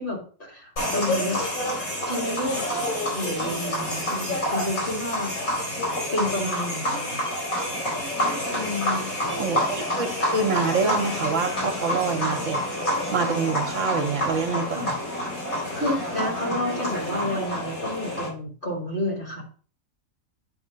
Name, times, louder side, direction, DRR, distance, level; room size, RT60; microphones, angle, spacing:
voice 1, 0.0-1.4 2.1-2.6 3.1-5.3 6.1-7.3 8.5-9.1 14.7-14.9 15.7-19.4, left 1 dB, 40° left, -1 dB, 2.6 m, -30 dB
sound 1, 0.8-18.3, left 1 dB, 75° left, 4.6 m, -28 dB
voice 2, 9.4-12.6 12.9-14.9, right 4 dB, 65° right, 5 dB, 1.2 m, -26 dB
8.7 x 3.2 x 5.1 m, 0.40 s
omnidirectional pair, 1.5 m